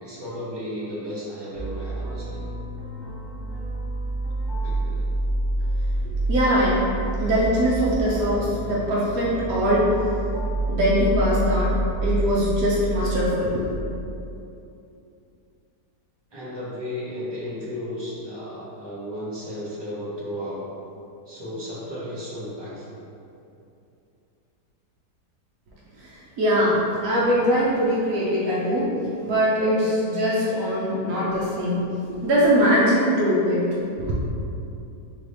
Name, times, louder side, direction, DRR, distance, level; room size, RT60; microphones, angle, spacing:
voice 1, 0.0-2.4 4.6-5.1 16.3-20.7 21.3-23.0, equal, 45° right, -8 dB, 0.3 m, -34 dB
sound 1, 1.6-13.3, right 2 dB, 25° right, 0.7 m, -28 dB
voice 2, 6.3-6.8 7.2-9.9 10.7-11.7 12.0-13.6 26.0-28.9 29.2-31.8 32.2-33.7 34.0-34.1, equal, 70° right, -6 dB, 1.0 m, -22 dB
3.9 x 3.2 x 3.3 m, 2.7 s
omnidirectional pair, 1.8 m